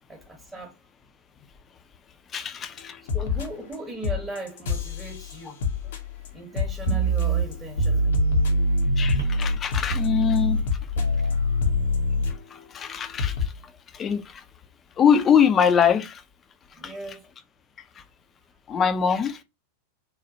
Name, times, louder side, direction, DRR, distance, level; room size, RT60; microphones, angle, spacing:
voice 1, 0.1-0.8 3.1-5.6 6.3-8.2 16.8-17.3, right 2 dB, 15° right, 0.8 m, -38 dB
voice 2, 2.3-3.0 9.0-10.6 12.7-13.4 13.9-14.4 15.0-16.2 16.8-16.9 18.7-19.4, left 7 dB, 25° left, 0.4 m, -22 dB
sound 1, 2.8-2.9 3.1-3.8 4.0-7.5 7.8-12.6 12.9-13.0 13.2-13.5, left 7 dB, 60° left, 0.7 m, -30 dB
sound 2, 6.9-9.6 9.9-12.3, equal, 80° left, 1.2 m, -23 dB
3.1 x 2.1 x 2.7 m
figure-of-eight pair, 90°, 0 cm